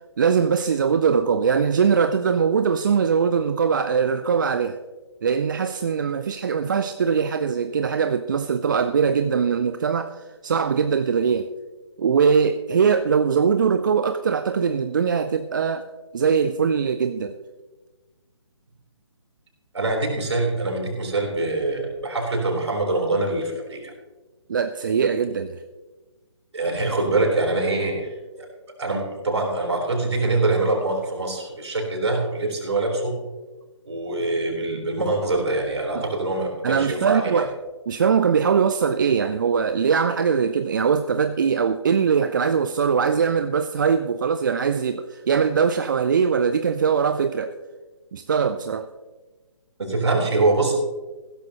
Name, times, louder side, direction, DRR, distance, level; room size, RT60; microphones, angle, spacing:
voice 1, 0.2-4.8 5.2-11.5 12.0-15.9 16.1-17.4 24.5-25.6 35.9-36.0 36.6-37.5 37.9-47.5 48.1-48.9, right 6 dB, 40° right, 10 dB, 0.5 m, -21 dB
voice 2, 19.7-23.9 26.5-28.5 28.8-33.2 33.9-37.5 49.8-50.7, right 2 dB, 65° right, 2 dB, 3.7 m, -24 dB
15.5 x 13.0 x 2.9 m, 1.2 s
figure-of-eight pair, 140°, 16 cm